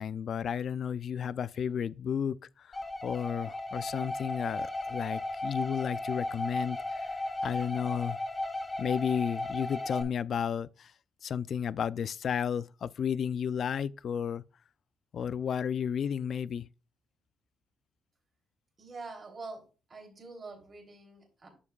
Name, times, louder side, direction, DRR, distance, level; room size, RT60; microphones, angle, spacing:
voice 1, 0.0-2.8 3.0-7.0 7.4-8.2 8.8-10.9 11.2-14.4 15.1-16.7, left 8 dB, 60° left, 0.3 m, -32 dB
sound 1, 2.7-10.0, left 2 dB, 20° left, 2.2 m, -35 dB
voice 2, 18.8-19.6 19.9-21.5, right 3 dB, 35° right, 3.0 m, -45 dB
9.9 x 7.1 x 2.3 m
cardioid pair, 90°, 0 cm